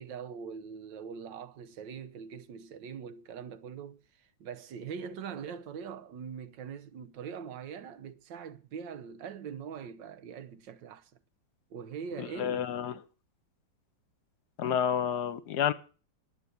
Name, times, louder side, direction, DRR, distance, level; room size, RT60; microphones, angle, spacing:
voice 1, 0.0-11.1 11.7-12.7, right 7 dB, 85° right, 1.6 m, -42 dB
voice 2, 12.2-13.0 14.6-15.7, left 9 dB, 70° left, 1.3 m, -30 dB
9.8 x 8.4 x 9.1 m
omnidirectional pair, 1.9 m